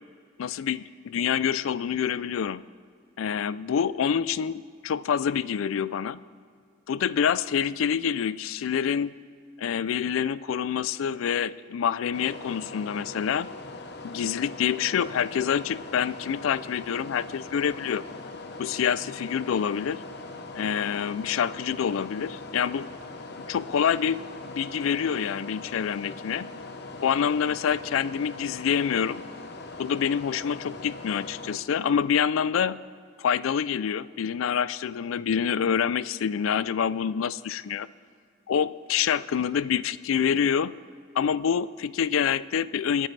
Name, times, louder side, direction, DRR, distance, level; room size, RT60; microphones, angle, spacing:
voice 1, 0.4-2.6 3.2-6.2 6.9-9.1 9.6-13.5 14.0-18.0 18.6-20.0 20.5-22.9 23.5-26.5 27.0-29.2 29.8-32.8 33.2-37.9 38.5-40.7 41.2-43.1, left 7 dB, 85° left, 18 dB, 0.4 m, -26 dB
sound 1, 12.1-31.6, left 2 dB, 55° left, 0.9 m, -41 dB
25.5 x 9.1 x 3.3 m, 2.2 s
head